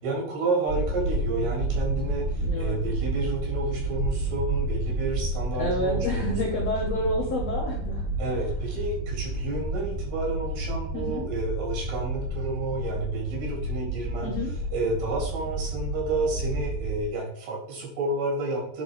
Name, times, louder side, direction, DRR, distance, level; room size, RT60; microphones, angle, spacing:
voice 1, 0.0-6.6 8.2-14.3 14.7-18.8, right 2 dB, 75° right, -3 dB, 5.8 m, -30 dB
sound 1, 0.7-17.0, right 2 dB, 10° right, 1.6 m, -30 dB
voice 2, 2.4-2.8 5.6-8.1 10.9-11.2 14.2-14.5, left 1 dB, 60° left, -2 dB, 1.8 m, -29 dB
10.0 x 4.9 x 4.9 m, 0.67 s
omnidirectional pair, 4.9 m